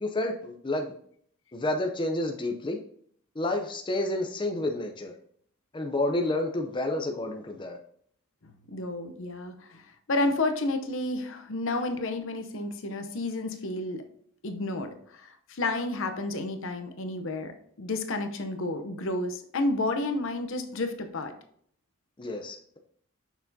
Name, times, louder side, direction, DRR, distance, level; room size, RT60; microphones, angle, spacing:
voice 1, 0.0-0.9 1.5-2.8 3.4-5.1 5.7-7.8 22.2-22.8, left 1 dB, 25° left, 3 dB, 0.6 m, -30 dB
voice 2, 8.4-14.1 14.4-21.3, left 2 dB, 65° left, 7 dB, 0.8 m, -31 dB
6.7 x 6.0 x 2.7 m, 0.62 s
head